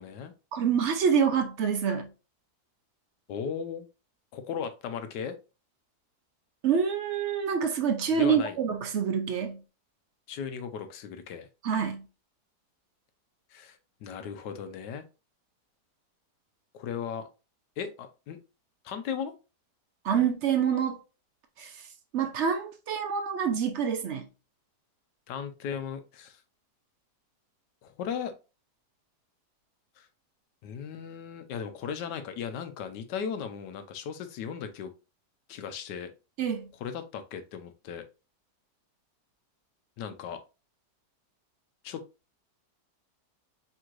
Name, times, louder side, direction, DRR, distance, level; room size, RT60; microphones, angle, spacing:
voice 1, 0.0-0.3 3.3-3.9 4.3-5.3 8.1-8.6 10.3-11.5 13.5-15.0 16.7-17.3 17.8-18.4 18.8-19.3 25.3-26.4 27.8-28.3 30.0-30.1 30.6-34.9 35.5-36.1 36.7-38.0 40.0-40.4 41.8-42.0, left 7 dB, 85° left, 1.3 m, -36 dB
voice 2, 0.5-2.1 6.6-9.6 11.6-12.0 20.0-21.0 21.6-21.7 22.1-24.3 36.4-36.7, right 7 dB, 70° right, 0.7 m, -26 dB
4.5 x 3.6 x 2.4 m
omnidirectional pair, 1.8 m